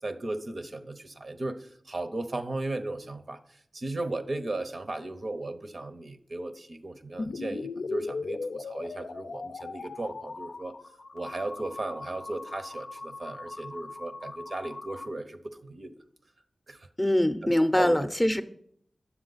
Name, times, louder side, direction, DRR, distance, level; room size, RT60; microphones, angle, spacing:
voice 1, 0.0-10.7 11.1-15.9 16.7-16.9 17.4-18.1, right 2 dB, 60° right, 9 dB, 0.8 m, -36 dB
sound 1, 7.2-15.1, left 3 dB, 85° left, 0.4 m, -39 dB
voice 2, 17.0-18.4, left 1 dB, 10° left, 9 dB, 0.6 m, -23 dB
9.5 x 7.1 x 4.0 m, 0.66 s
cardioid pair, 50°, 0 cm